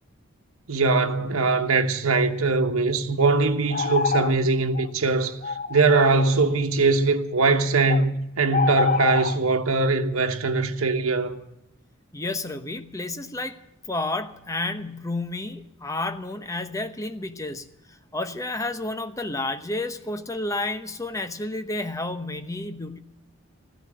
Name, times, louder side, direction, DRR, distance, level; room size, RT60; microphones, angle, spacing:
voice 1, 0.7-5.4 5.7-11.4, right 3 dB, 90° right, 1.1 m, -21 dB
sound 1, 3.7-4.4 4.7-4.9 5.4-6.4 7.9-8.0 8.5-9.4, left 5 dB, 40° left, 0.5 m, -26 dB
voice 2, 12.1-13.6 13.9-17.7 18.1-23.0, left 2 dB, 15° left, 0.9 m, -31 dB
15.0 x 10.5 x 8.7 m
head